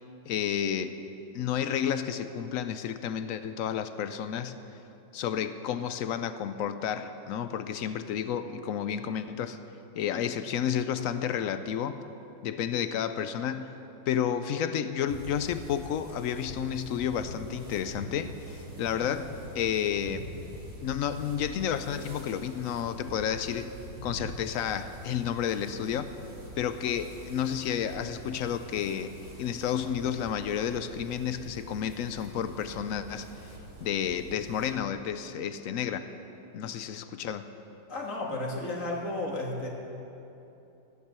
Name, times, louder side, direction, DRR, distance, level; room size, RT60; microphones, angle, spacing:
voice 1, 0.3-1.0 1.3-4.6 5.1-9.6 9.9-12.0 12.4-13.8 14.1-20.3 20.8-23.7 24.0-26.1 26.6-33.3 33.8-36.1 36.5-37.5, left 8 dB, 70° left, 11 dB, 0.8 m, -31 dB
sound 1, 15.1-34.7, right 1 dB, 35° right, 2.0 m, -44 dB
voice 2, 37.9-39.7, left 2 dB, 50° left, -1 dB, 1.9 m, -33 dB
14.5 x 9.6 x 6.8 m, 2.9 s
omnidirectional pair, 1.8 m